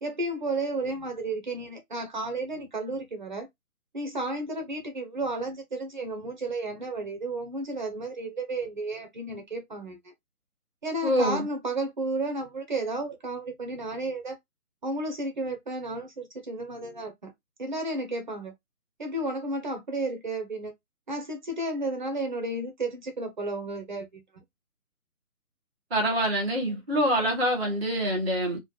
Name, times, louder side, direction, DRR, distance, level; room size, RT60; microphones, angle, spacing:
voice 1, 0.0-3.5 3.9-10.0 10.8-14.4 14.8-17.3 17.6-18.5 19.0-20.7 21.1-24.2, right 2 dB, 30° right, 0.8 m, -32 dB
voice 2, 11.0-11.5 25.9-28.6, equal, ahead, 0.7 m, -25 dB
3.1 x 2.5 x 3.8 m
figure-of-eight pair, 155°, 44 cm